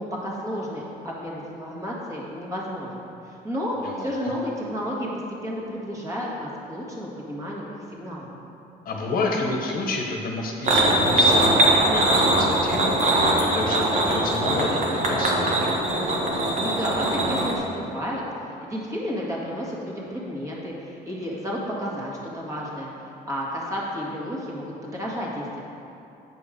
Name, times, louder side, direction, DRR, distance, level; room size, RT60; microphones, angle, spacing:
voice 1, 0.0-3.0 3.3-5.1 5.4-8.3 16.6-25.6, equal, 20° right, -5 dB, 1.8 m, -32 dB
voice 2, 3.8-4.3 8.8-15.7, left 3 dB, 60° left, 0 dB, 1.0 m, -30 dB
sound 1, 10.6-17.6, right 1 dB, 45° right, 1.2 m, -21 dB
7.6 x 5.1 x 5.1 m, 2.9 s
cardioid pair, 110°, 17 cm